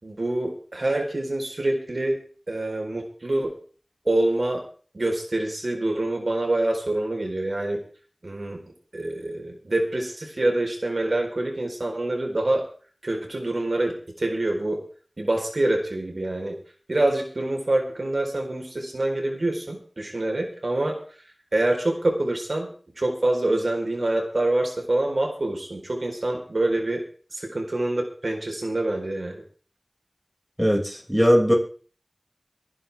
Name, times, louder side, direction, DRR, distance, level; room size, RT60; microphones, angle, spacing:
voice 1, 0.0-2.2 2.5-3.5 4.0-4.6 4.9-7.8 8.2-8.6 8.9-12.6 13.0-14.8 15.2-16.6 16.9-21.0 21.5-22.7 23.0-27.0 27.3-29.4, right 2 dB, 85° right, 2 dB, 4.3 m, -26 dB
voice 2, 30.6-31.5, equal, 5° right, 0 dB, 6.2 m, -19 dB
25.0 x 11.0 x 3.6 m, 0.41 s
wide cardioid pair, 40°, 0 cm